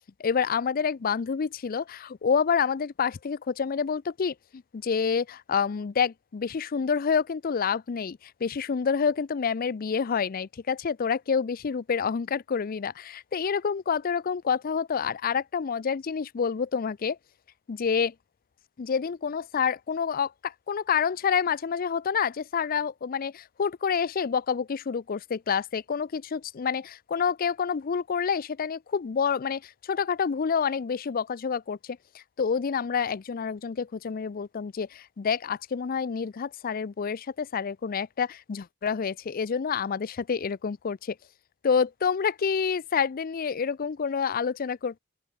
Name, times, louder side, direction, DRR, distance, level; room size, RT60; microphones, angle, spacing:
voice 1, 0.2-17.2 17.7-18.1 18.8-41.2 41.6-45.0, left 6 dB, 45° left, 0.4 m, -28 dB
open air
head